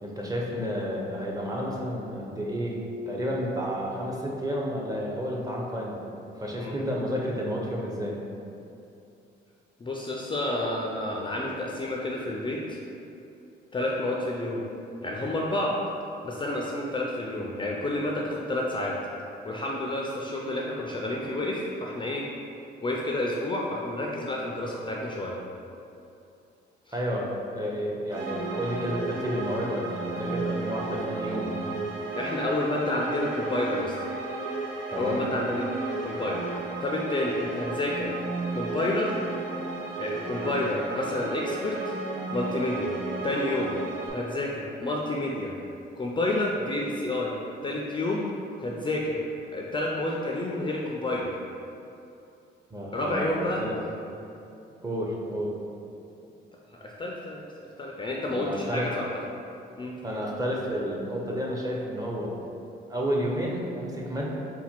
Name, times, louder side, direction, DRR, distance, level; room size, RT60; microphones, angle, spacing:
voice 1, 0.0-2.8 3.1-6.0 6.4-8.2 26.9-31.5 34.9-35.2 52.7-53.7 54.8-55.5 58.3-58.9 60.0-62.3 62.9-64.4, equal, 20° right, -3 dB, 0.7 m, -31 dB
voice 2, 9.8-12.8 13.7-14.7 15.0-15.8 16.2-19.0 19.4-22.3 22.8-25.4 32.2-34.0 35.0-35.7 36.0-36.4 36.8-38.2 38.5-39.2 40.0-41.9 42.3-42.9 43.2-43.8 44.1-45.5 46.0-47.4 47.6-48.3 48.6-49.2 49.5-51.4 52.9-53.6 56.7-57.5 57.8-59.1 59.8-59.9, left 1 dB, 25° left, -2 dB, 0.4 m, -29 dB
sound 1, 28.1-44.1, right 3 dB, 85° right, 0.8 m, -34 dB
4.1 x 2.2 x 4.3 m, 2.7 s
cardioid pair, 90°, 20 cm